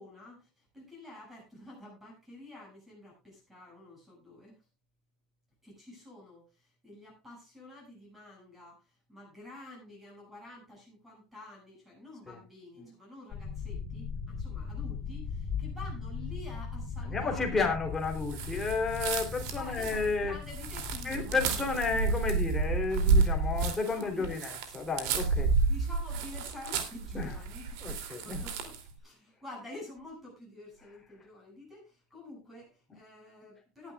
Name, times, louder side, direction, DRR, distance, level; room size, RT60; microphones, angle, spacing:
voice 1, 0.0-4.6 5.6-17.6 19.5-21.4 21.7-22.2 23.4-23.5 23.9-24.3 25.7-33.9, left 2 dB, 10° right, -1 dB, 7.3 m, -49 dB
sound 1, 13.3-23.5, left 5 dB, 35° left, 3.2 m, -39 dB
voice 2, 17.1-20.4 21.0-25.5 27.1-27.3 27.8-28.4, left 4 dB, 10° left, 2 dB, 3.2 m, -32 dB
sound 2, 18.2-28.9, right 4 dB, 75° right, 2.8 m, -31 dB
19.0 x 11.0 x 2.4 m, 0.26 s
cardioid pair, 155°, 3 cm